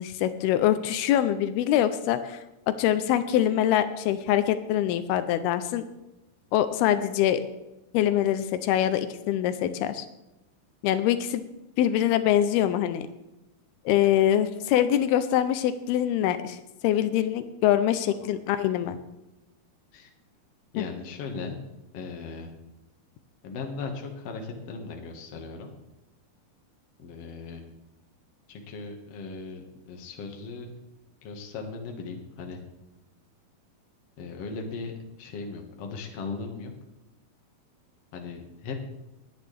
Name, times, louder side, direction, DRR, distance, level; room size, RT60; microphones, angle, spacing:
voice 1, 0.0-5.8 6.5-7.4 7.9-10.1 10.8-11.4 11.8-13.1 13.9-16.6 16.8-19.0 20.8-20.9, left 11 dB, 85° left, 11 dB, 2.6 m, -24 dB
voice 2, 20.7-21.6 21.9-22.5 23.4-25.7 27.0-27.6 28.5-30.7 31.2-32.6 34.2-36.7 38.1-38.8, left 4 dB, 50° left, 3 dB, 2.2 m, -38 dB
20.0 x 9.5 x 3.4 m, 0.97 s
omnidirectional pair, 4.5 m